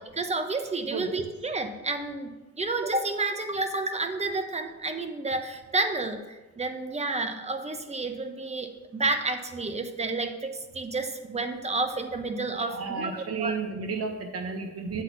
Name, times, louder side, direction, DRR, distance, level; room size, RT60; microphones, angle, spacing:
voice 1, 0.2-13.6, right 3 dB, 20° right, 7 dB, 0.9 m, -30 dB
voice 2, 12.6-15.0, right 4 dB, 50° right, 4 dB, 1.3 m, -32 dB
8.0 x 4.2 x 6.8 m, 1.2 s
cardioid pair, 90°, 30 cm